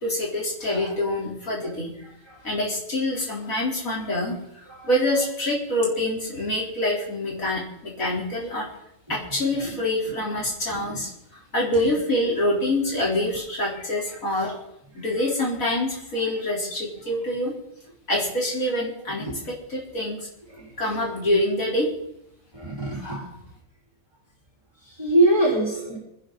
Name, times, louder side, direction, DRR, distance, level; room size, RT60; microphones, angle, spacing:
voice 1, 0.0-1.9 2.4-4.4 4.8-8.7 9.1-11.1 11.5-14.6 14.9-17.5 18.1-20.2 20.8-21.9 23.0-23.3, left 1 dB, 90° left, -3 dB, 4.8 m, -26 dB
voice 2, 10.7-11.0 13.7-13.8 19.2-19.4 20.5-20.7 22.5-23.2 24.9-26.0, right 1 dB, 20° right, -6 dB, 5.2 m, -24 dB
26.5 x 10.0 x 4.2 m, 0.78 s
omnidirectional pair, 1.4 m